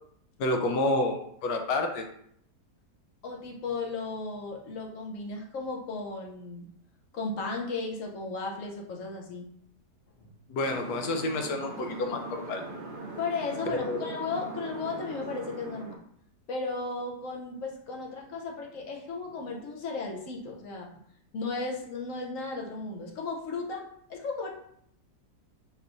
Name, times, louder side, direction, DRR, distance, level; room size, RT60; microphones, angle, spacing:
voice 1, 0.4-2.0 10.5-12.6 13.9-14.1, left 2 dB, 80° left, 4 dB, 1.3 m, -29 dB
voice 2, 3.2-6.7 7.1-9.5 13.2-16.0 16.5-20.9 21.3-24.5, left 3 dB, 60° left, 0 dB, 1.0 m, -35 dB
sound 1, 10.6-16.0, right 2 dB, 85° right, 0.4 m, -41 dB
5.4 x 3.1 x 2.5 m, 0.69 s
omnidirectional pair, 1.8 m